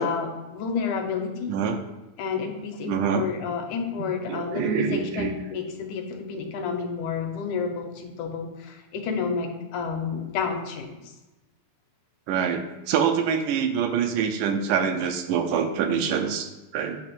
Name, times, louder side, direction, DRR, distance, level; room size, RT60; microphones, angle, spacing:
voice 1, 0.0-1.5 2.2-11.0, left 5 dB, 75° left, 3 dB, 2.3 m, -30 dB
voice 2, 1.5-1.8 2.9-3.3 4.3-5.3 12.3-17.0, right 7 dB, 80° right, 6 dB, 2.1 m, -25 dB
8.8 x 3.0 x 5.9 m, 1.1 s
omnidirectional pair, 3.6 m